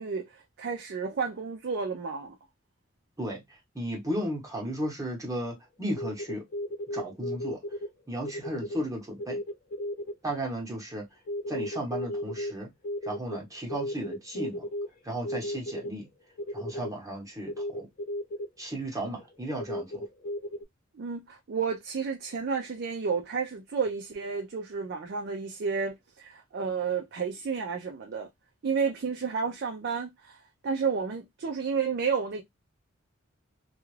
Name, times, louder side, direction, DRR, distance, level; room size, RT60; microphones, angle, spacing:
voice 1, 0.0-2.4 20.9-28.3 28.6-30.4 30.6-32.4, right 5 dB, 55° right, 0.4 m, -31 dB
voice 2, 3.2-6.4 6.9-7.6 8.1-9.4 10.2-11.1 11.5-12.7 13.0-14.7 15.0-16.1 16.5-17.9 18.6-20.0, right 1 dB, 15° right, 0.9 m, -34 dB
sound 1, 5.9-7.9 8.3-8.8 9.2-10.1 11.3-12.5 12.8-14.9 15.2-15.9 16.4-16.9 17.5-18.5 19.1-20.6, left 1 dB, 45° left, 0.4 m, -34 dB
2.3 x 2.3 x 3.1 m
head